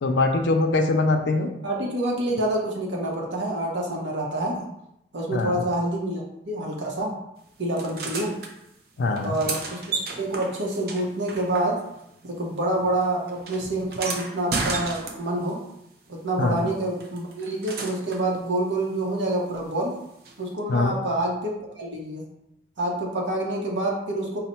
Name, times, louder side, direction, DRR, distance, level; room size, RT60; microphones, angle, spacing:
voice 1, 0.0-1.5 5.3-5.5 9.0-9.3 16.4-16.6 20.7-20.9, left 2 dB, 80° left, 3 dB, 0.4 m, -22 dB
voice 2, 1.6-4.7 5.1-7.1 7.6-8.3 9.2-11.8 12.2-15.6 16.1-20.0 20.4-22.2 22.8-24.4, right 1 dB, 85° right, -2 dB, 0.8 m, -27 dB
sound 1, 7.8-8.5 9.1-12.1 12.4-15.5 17.0-18.3 20.2-20.3, right 3 dB, 55° right, 0.5 m, -33 dB
4.0 x 2.1 x 4.3 m, 0.83 s
head